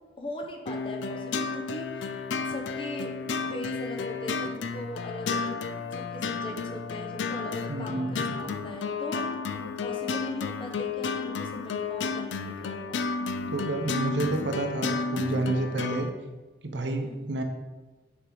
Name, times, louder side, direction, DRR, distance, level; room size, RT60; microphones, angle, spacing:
voice 1, 0.2-3.1 3.4-5.6 5.9-13.1 17.0-17.3, left 1 dB, 30° left, 1 dB, 0.9 m, -40 dB
sound 1, 0.7-16.1, left 4 dB, 85° left, 0.4 m, -32 dB
voice 2, 7.7-8.4 13.5-16.1 16.6-17.4, right 2 dB, 75° right, 4 dB, 0.8 m, -29 dB
7.0 x 4.8 x 3.9 m, 1.3 s
head